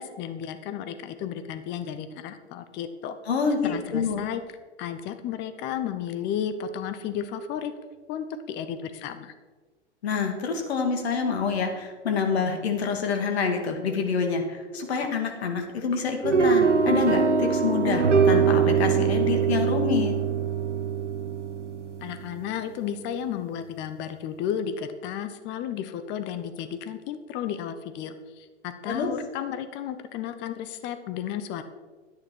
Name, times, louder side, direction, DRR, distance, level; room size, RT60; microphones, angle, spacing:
voice 1, 0.0-3.2 3.6-4.4 4.8-7.7 8.1-9.3 22.0-31.6, left 9 dB, 30° left, 10 dB, 0.9 m, -33 dB
voice 2, 3.3-3.6 3.9-4.2 10.0-20.1 28.9-29.1, left 5 dB, 60° left, 4 dB, 2.2 m, -27 dB
sound 1, 16.2-22.5, right 6 dB, 90° right, 1.0 m, -23 dB
11.0 x 9.6 x 4.5 m, 1.4 s
figure-of-eight pair, 100°, 35 cm